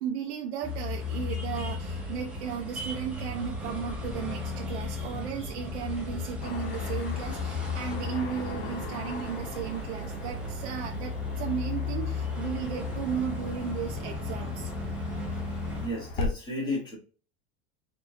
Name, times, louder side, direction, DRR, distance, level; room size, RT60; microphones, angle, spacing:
voice 1, 0.0-14.7, right 8 dB, 85° right, 2 dB, 0.6 m, -35 dB
sound 1, 0.6-15.9, left 3 dB, 5° right, 0.7 m, -34 dB
Car passing by / Traffic noise roadway noise, 6.4-16.3, left 4 dB, 75° left, 1.0 m, -40 dB
voice 2, 15.8-17.0, left 1 dB, 15° left, -3 dB, 1.4 m, -32 dB
4.2 x 2.6 x 2.8 m, 0.38 s
supercardioid pair, 150°, 32 cm